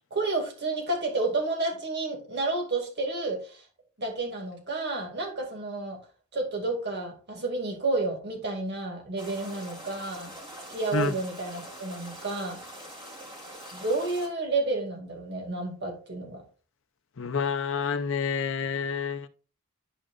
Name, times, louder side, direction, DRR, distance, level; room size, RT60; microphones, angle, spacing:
voice 1, 0.1-3.6 4.0-6.0 6.3-10.3 10.7-12.6 13.7-16.4, right 2 dB, 55° right, 2.3 m, -30 dB
sound 1, 9.2-14.3, equal, 25° right, 3.1 m, -44 dB
voice 2, 17.2-19.3, left 5 dB, 65° left, 0.7 m, -28 dB
11.5 x 5.0 x 2.5 m
head